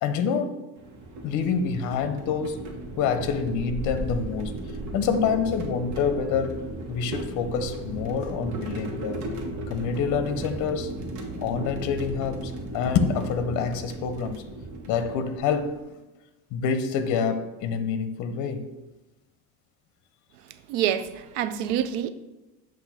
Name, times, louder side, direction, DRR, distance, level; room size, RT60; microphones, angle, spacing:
voice 1, 0.0-0.6 1.2-2.7 3.0-6.6 6.9-9.2 9.7-11.0 11.4-14.4 14.9-15.8 16.5-18.7, left 6 dB, 60° left, 0.7 m, -27 dB
sound 1, 0.8-15.8, right 2 dB, 60° right, 1.2 m, -36 dB
voice 2, 20.7-22.1, right 10 dB, 90° right, 0.6 m, -26 dB
7.8 x 2.6 x 5.5 m
cardioid pair, 140°, 34 cm